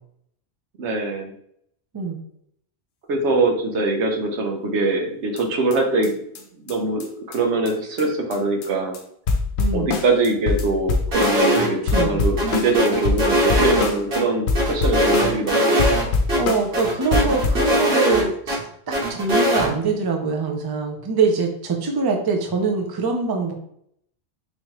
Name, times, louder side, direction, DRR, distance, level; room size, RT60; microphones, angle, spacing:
voice 1, 0.8-1.3 3.1-6.2 6.5-7.0 7.3-9.0 9.7-16.1 17.1-17.4, right 2 dB, 85° right, 2 dB, 1.1 m, -23 dB
sound 1, 5.4-5.5 5.7-5.8 6.0-6.1 6.4-6.5 6.7-6.8 7.0-7.1 7.3-7.4 7.7-7.8 8.0-8.1 8.3-8.7 8.9-9.0 9.3-11.6 11.9-14.2 14.5-15.5 15.8-16.8 17.1-17.7, left 4 dB, 70° left, 0.9 m, -24 dB
voice 2, 9.6-9.9 11.8-12.2 16.4-23.5, right 4 dB, 30° right, 2 dB, 0.4 m, -23 dB
sound 2, 11.1-11.7 11.9-12.0 12.4-14.2 14.5-16.0 16.3-16.4 16.7-18.6 18.9-19.7, equal, 60° right, 1.3 m, -20 dB
3.8 x 3.1 x 3.0 m, 0.69 s
omnidirectional pair, 1.1 m